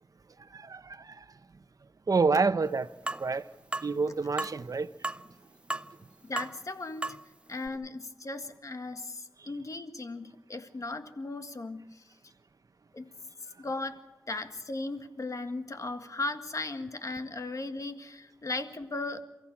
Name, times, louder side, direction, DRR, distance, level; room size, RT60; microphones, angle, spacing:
voice 1, 0.4-1.3 2.1-2.9 3.2-3.5 3.8-4.9 9.4-9.5, right 4 dB, 70° right, 0.9 m, -28 dB
sound 1, 3.1-3.3 3.7-3.9 4.4-4.6 5.0-5.3 5.7-6.0 6.4-6.5 7.0-7.2 7.7-7.8, right 2 dB, 15° right, 0.7 m, -34 dB
voice 2, 6.2-7.2 7.5-12.0 12.9-13.1 13.6-19.2, left 2 dB, 60° left, 1.8 m, -37 dB
28.5 x 14.5 x 7.3 m
wide cardioid pair, 60°, 6 cm